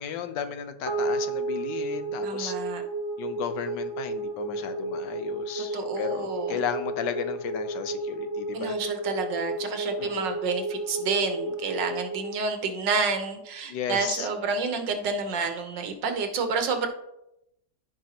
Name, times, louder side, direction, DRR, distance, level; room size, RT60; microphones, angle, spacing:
voice 1, 0.0-2.5 3.2-8.8 10.0-10.3 13.7-14.3, left 8 dB, 80° left, 9 dB, 1.4 m, -34 dB
sound 1, 0.9-13.4, right 2 dB, 15° left, 2.3 m, -32 dB
voice 2, 2.2-2.8 5.7-6.6 8.5-16.9, right 4 dB, 80° right, 6 dB, 1.7 m, -29 dB
15.0 x 5.0 x 2.9 m, 0.84 s
omnidirectional pair, 1.9 m